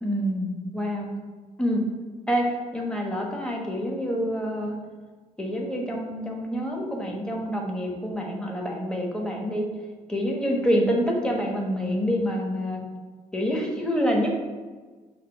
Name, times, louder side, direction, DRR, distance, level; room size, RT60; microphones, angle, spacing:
voice 1, 0.0-1.1 1.6-1.8 2.3-4.7 5.4-9.7 10.1-12.8 13.3-14.3, equal, 5° left, 0 dB, 1.1 m, -27 dB
5.1 x 2.1 x 4.3 m, 1.4 s
hypercardioid pair, 50°, 18 cm